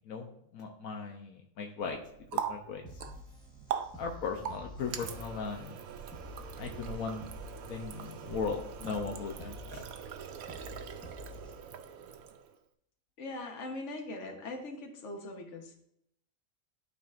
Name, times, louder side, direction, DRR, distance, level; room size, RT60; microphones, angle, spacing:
voice 1, 0.1-2.0 2.3-2.8 3.9-5.8 6.6-7.3 7.7-9.9, left 5 dB, 80° left, 2 dB, 1.2 m, -38 dB
Water tap faucet, 1.8-12.6, right 8 dB, 85° right, 1.1 m, -42 dB
sound 1, 2.8-11.8, left 3 dB, 5° left, 0.9 m, -50 dB
voice 2, 13.2-15.8, left 2 dB, 60° left, 3 dB, 1.4 m, -41 dB
12.0 x 4.1 x 2.4 m, 0.74 s
omnidirectional pair, 1.4 m